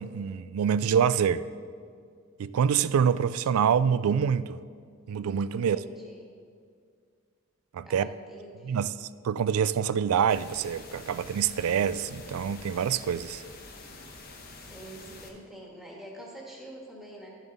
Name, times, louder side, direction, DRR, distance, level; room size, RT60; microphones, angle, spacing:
voice 1, 0.0-1.4 2.4-4.6 5.1-5.8 7.7-8.1 8.6-13.4, right 7 dB, 80° right, 0.3 m, -26 dB
voice 2, 5.5-6.2 7.8-8.9 14.5-17.4, right 1 dB, ahead, 1.5 m, -46 dB
sound 1, 10.3-15.3, left 3 dB, 45° left, 1.0 m, -47 dB
12.5 x 7.2 x 4.0 m
head